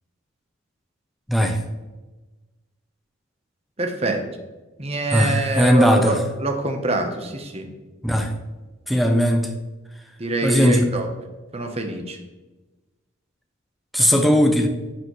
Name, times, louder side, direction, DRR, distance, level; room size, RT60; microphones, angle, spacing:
voice 1, 1.3-1.6 5.1-6.2 8.0-8.3 8.9-9.5 10.4-10.8 13.9-14.7, equal, ahead, 4 dB, 0.7 m, -18 dB
voice 2, 3.8-4.2 4.8-7.7 10.2-11.1 11.5-12.2, right 1 dB, 30° right, 5 dB, 1.0 m, -25 dB
10.0 x 7.0 x 3.2 m, 1.2 s
head